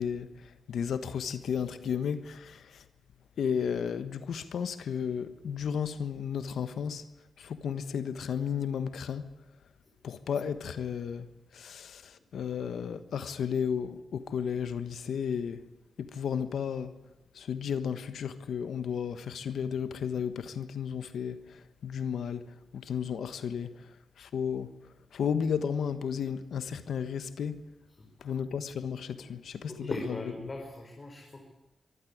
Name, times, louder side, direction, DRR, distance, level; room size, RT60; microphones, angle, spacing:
voice 1, 0.0-2.8 3.4-7.0 7.4-9.3 10.0-15.7 16.0-17.0 17.3-24.7 25.1-27.6 28.2-29.9, left 7 dB, 90° left, 1.3 m, -33 dB
voice 2, 29.7-31.5, left 2 dB, 35° left, 4.8 m, -39 dB
24.0 x 14.5 x 10.0 m
cardioid pair, 85°, 0 cm